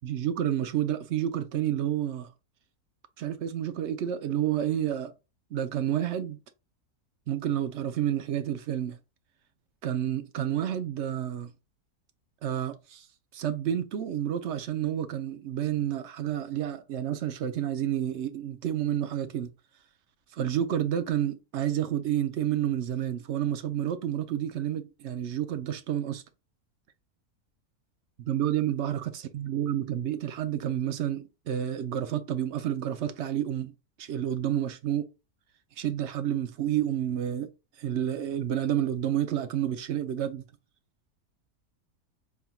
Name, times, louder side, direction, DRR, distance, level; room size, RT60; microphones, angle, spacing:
voice 1, 0.0-2.3 3.2-5.1 5.5-6.4 7.3-9.0 9.8-11.5 12.4-13.1 13.3-19.5 20.3-26.2 28.2-33.7 34.0-35.1 35.8-37.5 37.8-40.4, right 10 dB, 65° right, 0.7 m, -30 dB
4.2 x 3.5 x 2.3 m
omnidirectional pair, 1.6 m